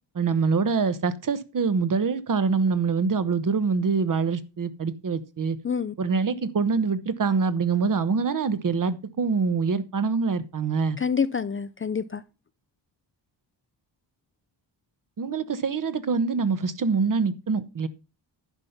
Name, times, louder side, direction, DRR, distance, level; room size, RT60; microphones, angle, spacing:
voice 1, 0.1-5.6 6.0-11.0 15.2-17.9, right 5 dB, 45° right, 1.0 m, -25 dB
voice 2, 11.0-12.2, left 6 dB, 30° left, 0.4 m, -27 dB
11.0 x 5.3 x 5.8 m
wide cardioid pair, 115°, 47 cm